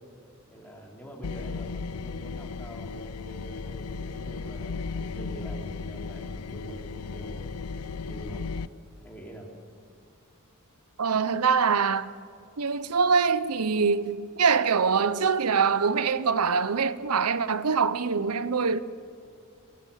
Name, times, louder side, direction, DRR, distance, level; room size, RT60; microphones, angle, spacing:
voice 1, 0.5-8.7 9.0-9.5, right 1 dB, 10° left, 4.0 m, -45 dB
sound 1, 1.2-8.7, left 4 dB, 85° left, 0.6 m, -35 dB
voice 2, 11.0-12.1 12.6-18.8, right 5 dB, 90° right, 0.7 m, -24 dB
27.5 x 18.0 x 7.3 m
head